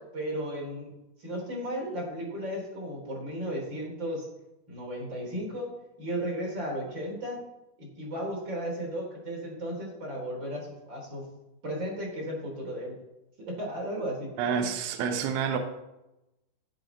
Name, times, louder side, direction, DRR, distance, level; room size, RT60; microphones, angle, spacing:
voice 1, 0.1-0.9 1.2-4.3 4.7-5.7 6.0-7.4 7.8-11.2 11.6-13.0 13.4-14.3, equal, 25° right, -1 dB, 3.7 m, -34 dB
voice 2, 14.4-15.6, right 7 dB, 80° right, 5 dB, 3.5 m, -28 dB
16.5 x 9.0 x 4.0 m, 0.93 s
omnidirectional pair, 5.4 m